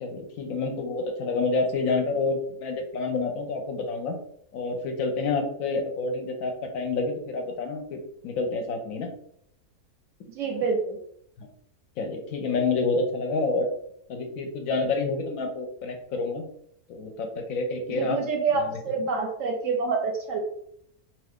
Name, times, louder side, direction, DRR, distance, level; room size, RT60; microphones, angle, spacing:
voice 1, 0.0-4.1 4.5-9.1 11.4-11.5 12.0-13.7 14.1-16.4 16.9-18.2 18.7-18.8, left 3 dB, 70° left, 4 dB, 0.9 m, -28 dB
voice 2, 10.3-11.0 17.9-20.4, right 4 dB, 65° right, 3 dB, 0.9 m, -27 dB
2.7 x 2.5 x 3.4 m, 0.69 s
omnidirectional pair, 1.6 m